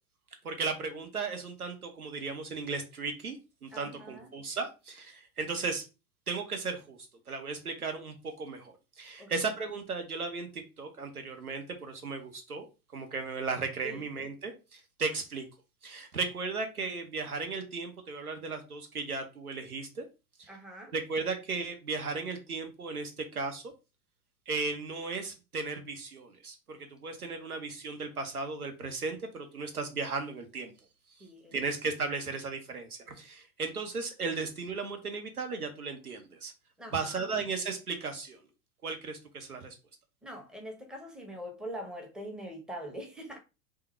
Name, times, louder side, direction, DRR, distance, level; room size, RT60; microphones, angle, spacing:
voice 1, 0.4-5.8 6.3-7.0 7.3-12.6 12.9-15.4 15.8-20.0 20.4-20.5 20.9-23.7 24.5-30.7 31.5-36.5 36.9-38.4 38.8-39.7, right 4 dB, 85° right, 1.1 m, -36 dB
voice 2, 3.7-4.3 9.2-9.3 13.8-14.1 20.5-20.9 31.2-31.5 36.8-37.3 40.2-43.4, right 1 dB, ahead, 0.8 m, -43 dB
3.6 x 2.4 x 4.3 m
figure-of-eight pair, 85°, 43 cm